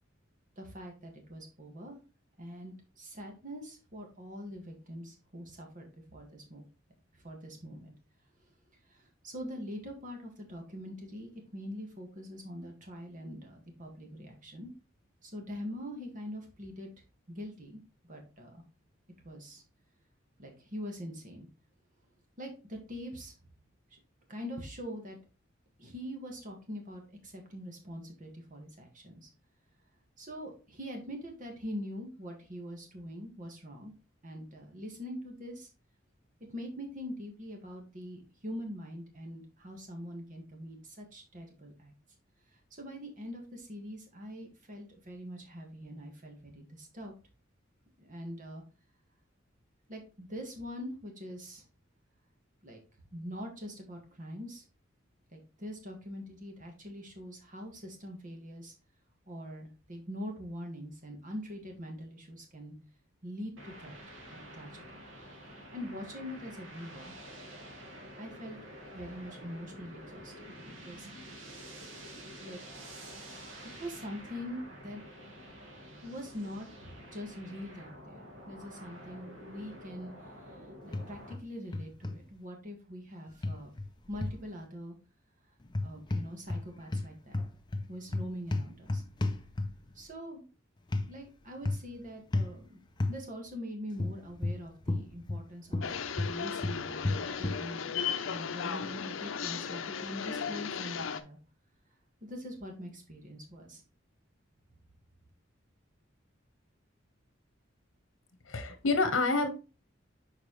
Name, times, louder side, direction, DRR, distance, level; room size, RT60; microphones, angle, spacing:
voice 1, 0.6-2.0 2.4-6.6 7.1-7.9 8.9-14.7 15.2-16.9 17.3-17.8 18.1-18.6 19.2-19.6 20.4-21.5 22.4-23.3 23.9-24.0 24.3-25.2 25.8-29.3 30.2-33.9 34.2-35.7 36.5-41.9 42.5-47.1 48.0-48.6 49.9-51.6 52.6-52.8 53.1-54.7 55.3-58.7 59.3-62.7 63.2-64.0 64.3-64.8 65.7-67.1 68.2-68.6 68.9-71.1 72.4-72.6 73.7-75.0 76.0-80.1 80.5-83.7 84.1-85.0 85.8-87.4 87.9-89.0 90.0-90.4 91.1-92.8 93.1-95.9 96.3-98.0 98.3-101.4 102.2-103.8, equal, 40° right, 2 dB, 1.8 m, -43 dB
sound 1, 63.6-81.4, equal, 85° right, 1.7 m, -49 dB
sound 2, 80.9-81.4 81.7-82.2 83.4-84.4 85.7-86.7 86.9-89.9 90.9-91.1 91.6-91.9 92.3-92.6 93.0-93.2 94.0-95.5 95.7-97.6, left 2 dB, 25° left, 0.5 m, -33 dB
sound 3, 95.8-101.2, left 6 dB, 90° left, 0.6 m, -36 dB
voice 2, 108.5-109.5, left 3 dB, 75° left, 8 dB, 1.1 m, -27 dB
6.8 x 4.7 x 3.1 m, 0.32 s
head